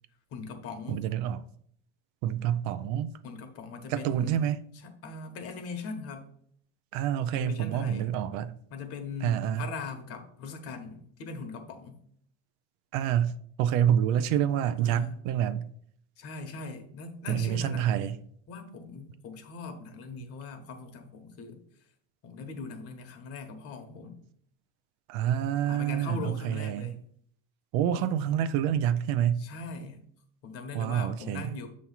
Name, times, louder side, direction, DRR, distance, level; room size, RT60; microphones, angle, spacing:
voice 1, 0.3-1.1 3.2-4.5 4.8-6.3 7.3-8.1 8.7-12.0 14.8-15.2 16.2-17.9 18.5-21.6 22.2-24.2 25.7-27.0 28.0-28.1 29.4-30.1 30.4-31.7, left 4 dB, 55° left, 1.2 m, -40 dB
voice 2, 0.9-1.4 2.2-3.2 3.9-4.6 6.9-8.6 9.2-9.7 12.9-15.7 17.3-18.2 25.1-26.9 27.7-29.5 30.7-31.6, right 10 dB, 70° right, 0.5 m, -27 dB
7.0 x 3.1 x 5.6 m
cardioid pair, 145°, 29 cm